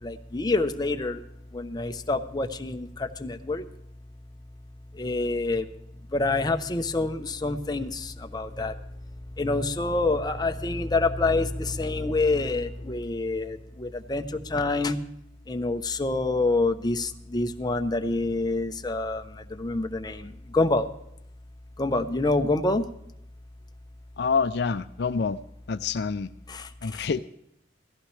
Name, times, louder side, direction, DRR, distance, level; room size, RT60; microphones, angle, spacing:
voice 1, 0.0-1.2 1.5-3.6 4.9-5.7 6.1-8.8 9.4-15.0 15.5-20.9 21.8-22.9 26.5-27.1, left 2 dB, 25° left, 6 dB, 0.8 m, -27 dB
voice 2, 24.2-25.4 25.7-26.3 26.8-27.2, left 5 dB, 65° left, 12 dB, 0.4 m, -27 dB
17.0 x 14.5 x 3.2 m, 0.79 s
head